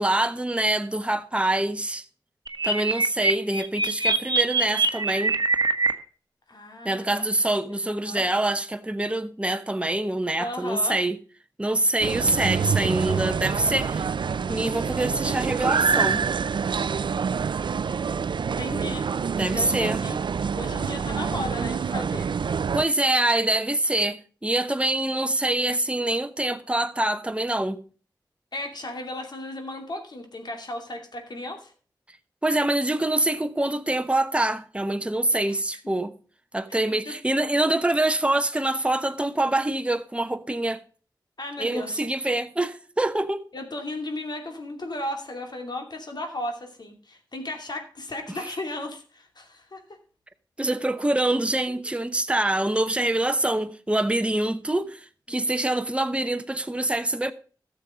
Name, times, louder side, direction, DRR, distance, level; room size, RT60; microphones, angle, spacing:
voice 1, 0.0-2.0 2.6-5.4 6.8-11.2 11.6-14.1 14.5-16.3 19.4-20.0 22.7-27.8 32.4-36.1 36.5-40.8 41.6-43.5 50.6-57.3, right 1 dB, 15° right, 0.9 m, -25 dB
sound 1, 2.5-5.9, right 3 dB, 55° right, 1.1 m, -23 dB
voice 2, 6.5-7.3 7.7-8.3 10.4-11.0 18.6-19.1 19.5-20.2 20.5-22.3 28.5-31.7 35.3-35.6 36.7-37.1 41.4-42.1 43.5-49.8 51.3-51.4 51.7-51.8 54.7-54.8 55.3-55.4, left 1 dB, 60° left, 2.6 m, -35 dB
sound 2, 12.0-22.9, right 6 dB, 70° right, 0.5 m, -26 dB
13.0 x 7.1 x 4.9 m
cardioid pair, 45°, 8 cm